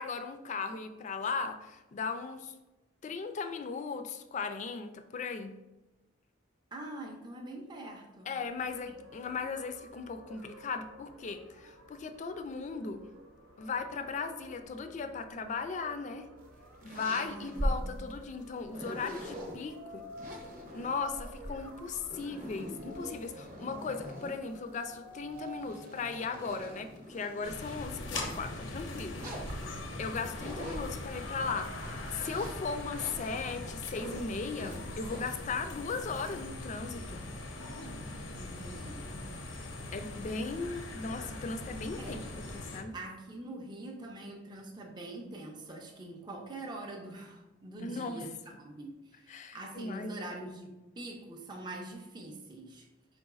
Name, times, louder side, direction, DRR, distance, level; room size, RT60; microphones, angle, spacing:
voice 1, 0.0-2.5 3.0-5.6 8.3-13.0 13.6-16.3 16.8-20.1 20.7-29.7 30.0-31.8 32.1-37.2 39.9-42.2 42.5-43.0 47.8-48.3 49.3-50.3, left 4 dB, 40° left, 9 dB, 0.3 m, -37 dB
voice 2, 6.7-8.3 17.1-18.0 38.4-39.1 40.2-40.4 42.0-42.2 42.9-48.3 48.6-52.9, right 2 dB, 25° right, 0 dB, 0.4 m, -44 dB
sound 1, 8.4-26.8, right 1 dB, 85° right, 0.6 m, -52 dB
sound 2, 16.4-19.6 20.1-24.5 25.1-27.5 28.0-28.5 29.2-31.3 31.7-35.4, equal, 40° right, 0.8 m, -41 dB
sound 3, 27.4-42.8, left 2 dB, 85° left, 0.6 m, -41 dB
4.5 x 3.9 x 2.4 m, 1.1 s
head